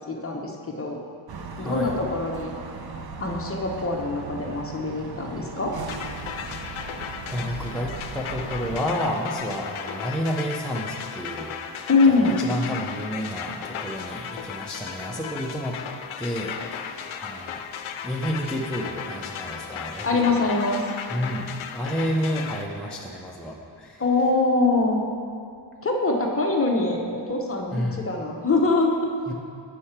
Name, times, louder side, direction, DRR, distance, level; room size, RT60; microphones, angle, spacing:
voice 1, 0.1-1.0 1.6-2.5 2.9-5.7 11.9-12.3 20.0-20.8 24.0-25.0 25.8-29.1, left 3 dB, 30° left, 1 dB, 0.7 m, -23 dB
sound 1, 1.3-8.8, right 5 dB, 50° right, 0.6 m, -38 dB
voice 2, 1.6-1.9 6.4-6.5 7.3-11.5 12.0-15.8 16.2-17.6 18.0-20.5 21.1-24.0 27.7-28.0 29.3-29.4, equal, ahead, -2 dB, 0.4 m, -30 dB
sound 2, 5.9-22.6, left 7 dB, 80° left, 0.6 m, -36 dB
8.2 x 5.7 x 4.3 m, 2.4 s
wide cardioid pair, 160°, 48 cm